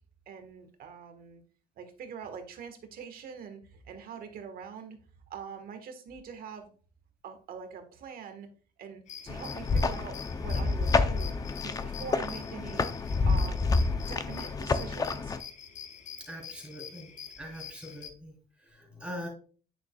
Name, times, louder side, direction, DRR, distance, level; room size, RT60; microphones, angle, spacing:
voice 1, 0.3-1.4 1.8-5.0 5.3-6.7 7.2-8.5 8.8-11.3 11.6-12.9 13.3-13.8 14.1-15.4, right 6 dB, 60° right, 6 dB, 1.4 m, -44 dB
sound 1, 9.1-18.1, left 8 dB, 45° left, 0.9 m, -46 dB
sound 2, 9.3-15.4, left 3 dB, 20° left, 0.6 m, -29 dB
voice 2, 16.3-17.1 17.4-18.4 18.7-19.3, equal, 5° right, 0 dB, 3.7 m, -42 dB
9.1 x 6.5 x 2.3 m, 0.40 s
cardioid pair, 110°, 17 cm